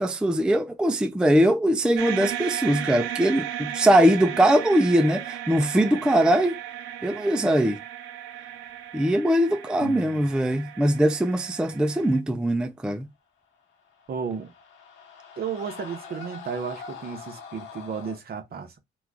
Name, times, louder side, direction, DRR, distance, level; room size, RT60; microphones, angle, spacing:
voice 1, 0.0-6.6 7.0-7.8 8.9-13.1, right 1 dB, 5° right, 0.3 m, -21 dB
sound 1, 2.0-12.2, right 11 dB, 90° right, 0.5 m, -35 dB
voice 2, 9.8-10.3 14.1-14.5 15.4-18.8, right 6 dB, 50° right, 0.9 m, -33 dB
sound 2, 13.7-18.2, left 5 dB, 85° left, 1.1 m, -43 dB
3.0 x 2.3 x 3.6 m
cardioid pair, 90°, 20 cm